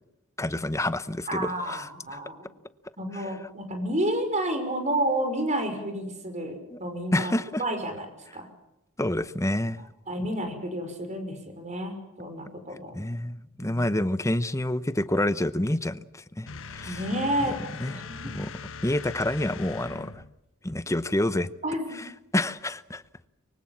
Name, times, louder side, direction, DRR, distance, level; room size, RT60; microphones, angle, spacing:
voice 1, 0.4-2.2 3.1-3.3 6.7-6.8 7.1-7.6 9.0-9.9 12.9-17.0 17.4-17.5 17.8-18.5 18.8-20.2 20.6-21.5 21.9-23.0, left 1 dB, 15° left, 0.8 m, -28 dB
voice 2, 1.3-2.5 3.0-7.3 7.6-8.1 8.3-8.5 10.1-13.0 13.6-13.8 16.9-17.6 17.9-18.3 21.6-22.0, right 1 dB, 30° right, 5.7 m, -30 dB
sound 1, 16.5-20.4, left 5 dB, 60° left, 1.3 m, -41 dB
24.5 x 24.0 x 7.4 m
head